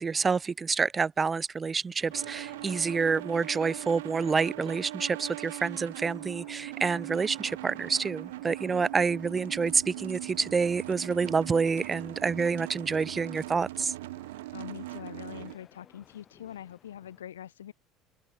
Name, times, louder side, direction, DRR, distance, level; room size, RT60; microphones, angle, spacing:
voice 1, 0.0-13.9, right 5 dB, 30° right, 0.7 m, -28 dB
sound 1, 2.0-17.2, left 8 dB, 40° left, 5.6 m, -59 dB
sound 2, 2.1-15.6, right 17 dB, 75° right, 0.3 m, -40 dB
voice 2, 14.5-17.7, left 10 dB, 80° left, 3.4 m, -43 dB
hypercardioid pair, 65°, 0 cm